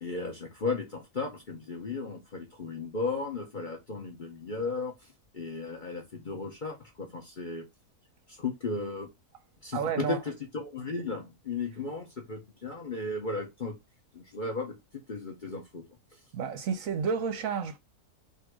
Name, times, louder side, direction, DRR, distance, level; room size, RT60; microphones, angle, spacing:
voice 1, 0.0-7.7 8.3-9.1 9.6-13.8 14.1-15.8, left 3 dB, 40° left, 0.8 m, -35 dB
voice 2, 9.7-10.2 16.3-17.8, right 6 dB, 65° right, 0.9 m, -30 dB
3.7 x 2.7 x 4.7 m
omnidirectional pair, 1.7 m